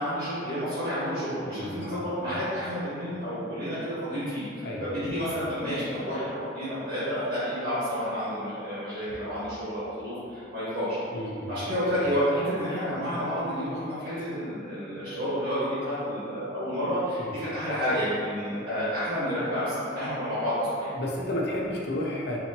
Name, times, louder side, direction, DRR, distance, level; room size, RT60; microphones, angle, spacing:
voice 1, 0.0-11.0 11.5-20.9, equal, 70° right, -13 dB, 1.4 m, -30 dB
voice 2, 1.5-2.0 4.6-4.9 11.1-11.6 17.2-17.3 20.9-22.4, left 1 dB, 60° left, -2 dB, 0.5 m, -32 dB
4.0 x 2.9 x 2.8 m, 2.5 s
head